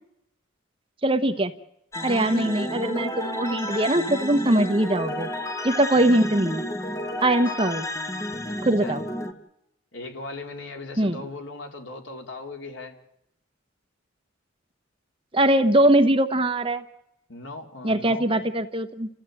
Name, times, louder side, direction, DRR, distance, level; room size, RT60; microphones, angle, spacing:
voice 1, 1.0-1.5 2.0-5.3 5.6-6.6 7.2-7.9 8.6-9.0 11.0-11.2 15.3-16.8 17.8-19.1, right 1 dB, 25° right, 9 dB, 1.1 m, -21 dB
sound 1, 1.9-9.3, left 1 dB, 15° left, 1.5 m, -31 dB
voice 2, 9.9-12.9 17.3-18.4, left 2 dB, 70° left, 3 dB, 3.6 m, -38 dB
30.0 x 14.0 x 9.1 m, 0.82 s
head